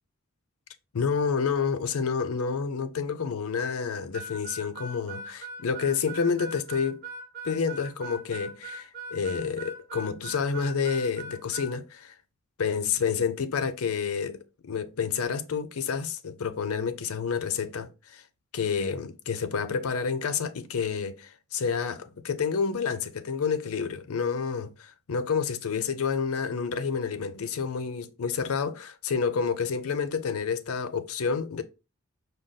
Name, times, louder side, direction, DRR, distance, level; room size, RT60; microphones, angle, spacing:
voice 1, 0.9-7.0 7.4-12.2 12.6-18.2 18.5-31.6, left 6 dB, 90° left, 0.5 m, -29 dB
Harmonica, 4.1-11.7, right 2 dB, 50° right, 1.1 m, -40 dB
5.0 x 2.2 x 3.9 m
head